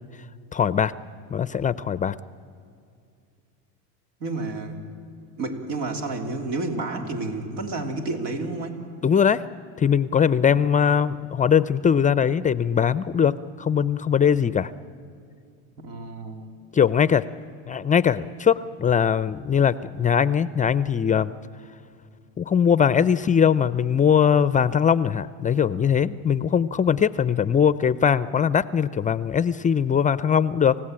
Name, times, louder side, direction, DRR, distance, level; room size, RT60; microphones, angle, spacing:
voice 1, 0.5-0.9 1.3-2.2 9.0-9.4 9.8-14.7 16.7-17.2 17.7-21.3 22.4-30.8, left 7 dB, 20° left, 16 dB, 0.5 m, -21 dB
voice 2, 4.2-4.8 5.4-8.9 10.5-10.6 15.8-16.5, right 2 dB, 85° right, 4 dB, 3.2 m, -30 dB
28.0 x 16.0 x 8.8 m, 2.5 s
supercardioid pair, 105°, 38 cm